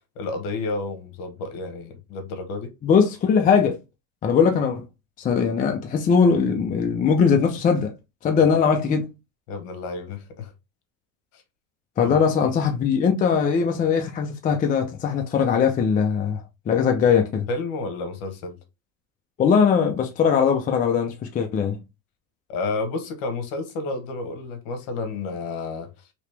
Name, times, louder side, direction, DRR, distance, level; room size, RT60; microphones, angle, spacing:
voice 1, 0.2-2.7 8.4-8.5 9.5-10.5 11.3-11.4 12.0-12.2 17.5-18.6 22.5-25.9, left 3 dB, 60° left, 1.2 m, -31 dB
voice 2, 2.8-3.8 4.2-4.9 5.2-7.9 8.2-9.1 12.0-17.5 19.4-21.8, left 6 dB, 20° left, 0.5 m, -20 dB
3.1 x 2.9 x 3.2 m
supercardioid pair, 125°, 40 cm